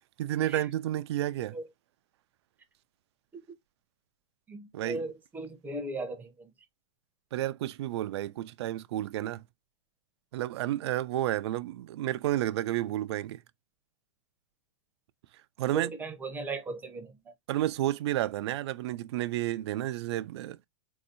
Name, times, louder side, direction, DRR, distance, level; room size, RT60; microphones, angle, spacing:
voice 1, 0.2-1.6 4.7-5.1 7.3-9.4 10.3-13.4 15.6-15.9 17.5-20.6, right 14 dB, 55° right, 0.4 m, -31 dB
voice 2, 4.5-6.3 15.7-17.1, right 2 dB, 10° right, 0.8 m, -37 dB
4.0 x 2.7 x 2.5 m
hypercardioid pair, 145°, 16 cm